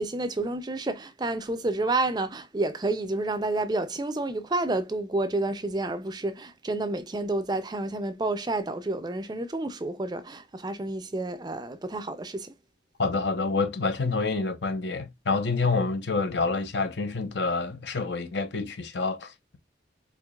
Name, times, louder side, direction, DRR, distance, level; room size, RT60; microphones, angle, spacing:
voice 1, 0.0-12.5, right 2 dB, 20° right, 0.4 m, -29 dB
voice 2, 13.0-19.6, left 4 dB, 75° left, 0.8 m, -28 dB
4.5 x 2.8 x 2.3 m
head